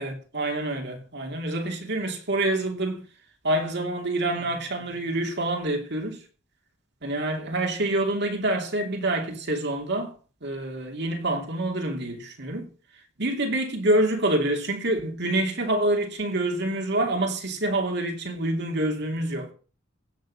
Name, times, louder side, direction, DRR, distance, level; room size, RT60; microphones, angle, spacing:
voice 1, 0.0-3.0 3.4-6.2 7.0-10.1 10.4-12.7 13.2-19.5, right 1 dB, 60° right, 2.7 m, -27 dB
16.0 x 6.6 x 6.3 m
head